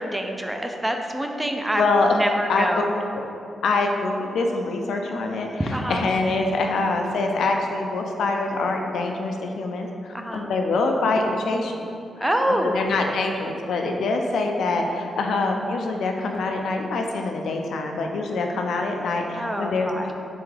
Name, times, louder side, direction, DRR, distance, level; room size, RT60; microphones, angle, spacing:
voice 1, 0.0-1.8 2.1-2.9 5.6-6.0 10.1-10.5 12.2-12.8 19.4-20.1, right 1 dB, 15° right, 3 dB, 0.4 m, -26 dB
voice 2, 1.8-2.1 2.5-2.7 3.6-5.5 5.9-11.9 12.7-20.1, left 3 dB, 80° left, 2 dB, 0.3 m, -24 dB
3.5 x 3.4 x 3.2 m, 2.7 s
supercardioid pair, 55°, 0 cm